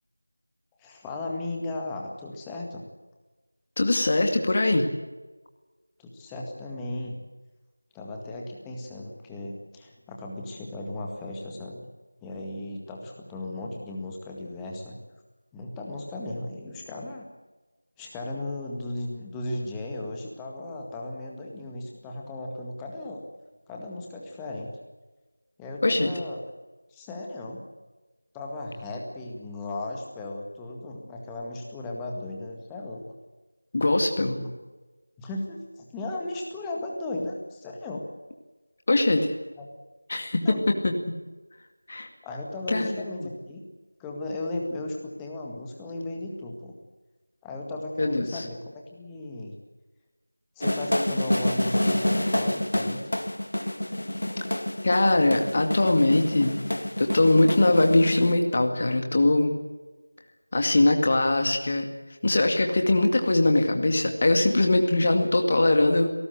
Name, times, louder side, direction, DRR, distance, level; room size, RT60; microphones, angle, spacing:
voice 1, 0.8-2.8 6.0-7.2 7.9-11.8 12.2-15.0 15.5-17.2 18.0-23.2 23.7-24.8 25.6-26.4 26.9-27.6 28.3-33.0 34.4-34.5 35.2-38.0 39.6-39.7 40.4-40.7 42.2-43.6 44.0-46.7 47.4-49.6 50.6-53.0, left 2 dB, 5° left, 0 dB, 1.9 m, -36 dB
voice 2, 3.8-4.9 25.8-26.1 33.7-34.4 38.9-39.3 40.1-40.4 40.8-40.9 41.9-42.1 42.7-43.3 48.0-48.4 54.8-56.6 57.0-59.6 60.5-61.9 62.2-66.1, left 2 dB, 30° left, 4 dB, 2.2 m, -22 dB
sound 1, 50.6-58.3, left 1 dB, 60° left, 1.7 m, -28 dB
26.0 x 19.0 x 7.8 m, 1.2 s
figure-of-eight pair, 170°, 0 cm